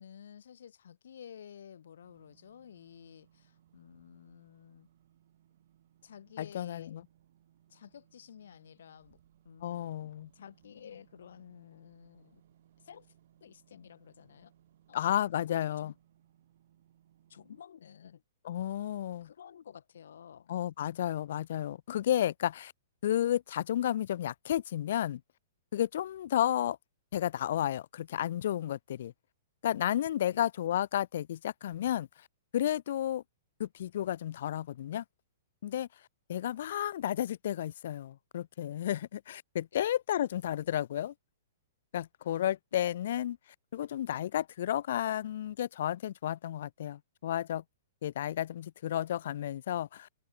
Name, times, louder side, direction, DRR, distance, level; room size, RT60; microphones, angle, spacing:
voice 1, 0.0-4.9 6.0-6.9 7.7-9.2 9.4-12.4 12.8-13.1 13.4-14.5 14.9-15.0 15.6-15.9 17.3-18.2 19.2-20.5 30.3-30.5 39.7-39.9 42.7-42.8, left 8 dB, 80° left, 4.6 m, -52 dB
sound 1, 2.0-17.6, right 11 dB, 60° right, 4.0 m, -66 dB
voice 2, 6.4-7.0 9.6-10.3 14.9-15.9 18.4-19.3 20.5-22.7 23.0-25.2 25.7-26.8 27.1-29.1 29.6-32.1 32.5-33.2 33.6-35.0 35.6-35.9 36.3-41.1 41.9-43.4 43.7-47.6 48.0-50.1, left 11 dB, 60° left, 0.6 m, -32 dB
hypercardioid pair, 155°, 0 cm